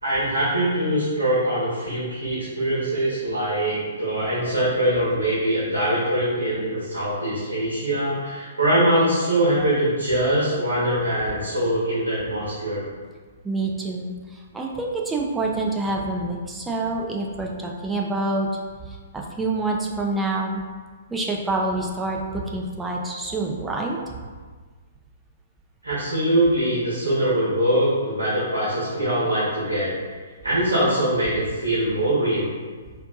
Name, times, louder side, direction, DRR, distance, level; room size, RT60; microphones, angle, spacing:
voice 1, 0.0-12.9 25.8-30.2 30.4-32.5, right 1 dB, 80° right, -8 dB, 1.1 m, -23 dB
voice 2, 13.4-18.5 18.8-20.6 21.1-24.0, right 2 dB, 10° right, -1 dB, 0.5 m, -27 dB
4.4 x 2.6 x 2.4 m, 1.5 s
figure-of-eight pair, 120°, 0 cm